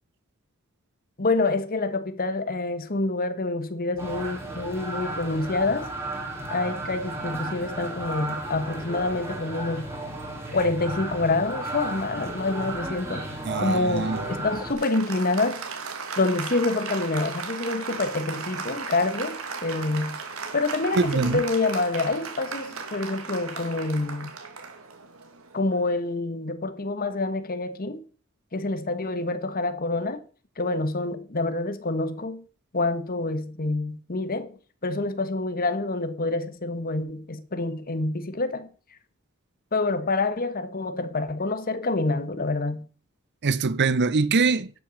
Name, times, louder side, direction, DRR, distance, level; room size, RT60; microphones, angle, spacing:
voice 1, 1.2-5.9 6.5-10.0 10.5-13.3 13.6-15.6 16.2-20.2 20.5-24.3 25.5-28.0 28.5-30.2 30.6-32.4 32.7-34.5 34.8-38.7 39.7-42.9, left 2 dB, 45° left, 1.3 m, -27 dB
sound 1, 4.0-14.7, right 2 dB, 15° right, 3.3 m, -34 dB
voice 2, 13.5-14.2 21.0-21.4 43.4-44.7, right 4 dB, 55° right, 0.7 m, -23 dB
Applause, 14.1-26.0, right 5 dB, 75° right, 2.1 m, -36 dB
11.5 x 6.9 x 6.4 m
head